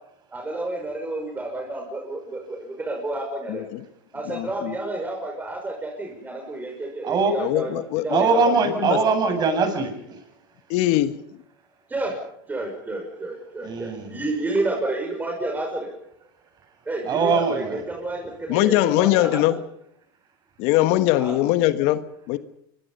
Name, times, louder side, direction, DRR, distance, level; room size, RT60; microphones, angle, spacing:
voice 1, 0.3-3.6 4.1-8.6 10.9-11.0 11.9-12.2 12.5-15.9 16.9-19.6 21.1-21.4, right 2 dB, 15° right, 5.8 m, -30 dB
voice 2, 3.5-3.8 4.3-4.7 7.4-8.2 8.6-9.0 10.7-11.2 18.5-19.6 20.6-22.4, left 15 dB, 60° left, 1.5 m, -21 dB
voice 3, 8.1-10.2 13.7-13.9 17.1-17.8, right 4 dB, 35° right, 7.4 m, -21 dB
26.0 x 23.5 x 5.6 m
hypercardioid pair, 110°, 12 cm